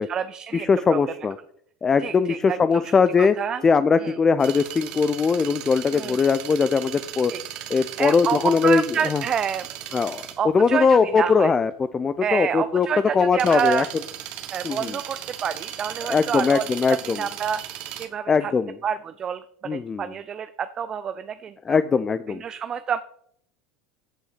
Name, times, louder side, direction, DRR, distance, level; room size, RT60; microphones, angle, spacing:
voice 1, 0.0-1.0 2.0-2.9 3.2-3.6 4.0-4.2 5.9-6.2 7.3-7.4 8.0-9.7 10.4-11.5 12.2-13.9 14.5-17.6 18.0-18.5 18.8-21.8 22.3-23.0, right 7 dB, 30° right, 12 dB, 0.5 m, -28 dB
voice 2, 0.5-1.4 1.8-3.3 3.6-7.3 7.7-9.2 9.9-10.2 10.5-12.9 13.1-13.8 14.6-15.0 16.1-17.2 18.3-18.8 19.7-20.0 21.7-22.4, left 5 dB, 25° left, 14 dB, 0.4 m, -20 dB
sound 1, 4.4-18.1, right 11 dB, 50° right, 1.3 m, -37 dB
15.0 x 5.5 x 4.2 m, 0.69 s
figure-of-eight pair, 75°, 2 cm